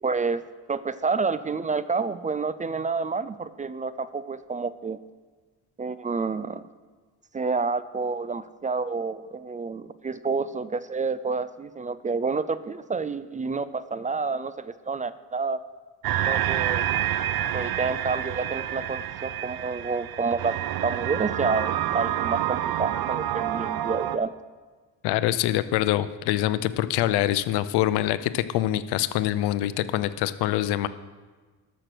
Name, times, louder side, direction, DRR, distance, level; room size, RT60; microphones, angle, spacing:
voice 1, 0.0-5.0 5.8-6.6 7.3-15.6 16.3-16.8 17.5-20.6 20.8-24.3, right 4 dB, 20° right, 15 dB, 0.4 m, -29 dB
sound 1, 16.0-24.2, right 11 dB, 65° right, 0.7 m, -28 dB
voice 2, 25.0-30.9, left 14 dB, 85° left, 14 dB, 0.7 m, -25 dB
13.5 x 6.4 x 6.1 m, 1.4 s
cardioid pair, 95°, 39 cm